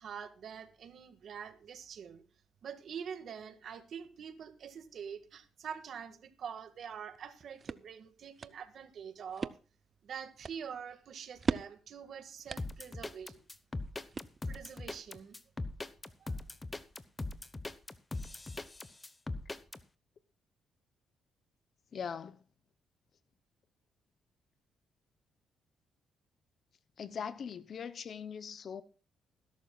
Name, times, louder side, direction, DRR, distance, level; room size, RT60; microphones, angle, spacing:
voice 1, 0.0-2.2 2.6-9.5 10.0-13.4 14.5-15.4 16.2-16.4, right 7 dB, 60° right, 1.8 m, -45 dB
sound 1, 7.2-14.8, right 4 dB, 35° right, 0.6 m, -42 dB
sound 2, 12.6-19.8, left 2 dB, 20° left, 1.0 m, -40 dB
voice 2, 21.9-22.4 27.0-28.8, left 7 dB, 55° left, 0.7 m, -41 dB
20.5 x 11.5 x 2.4 m
cardioid pair, 90°, 0 cm